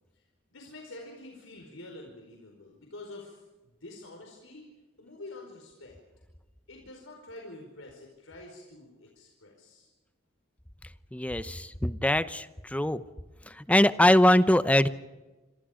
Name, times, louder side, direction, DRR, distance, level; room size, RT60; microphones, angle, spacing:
voice 1, 0.5-3.4 3.8-4.6 5.0-6.0 6.7-9.9, left 2 dB, 85° left, 1 dB, 4.7 m, -47 dB
voice 2, 11.1-13.0 13.5-14.9, left 1 dB, 5° left, 13 dB, 0.8 m, -23 dB
27.0 x 26.5 x 5.1 m, 1.2 s
head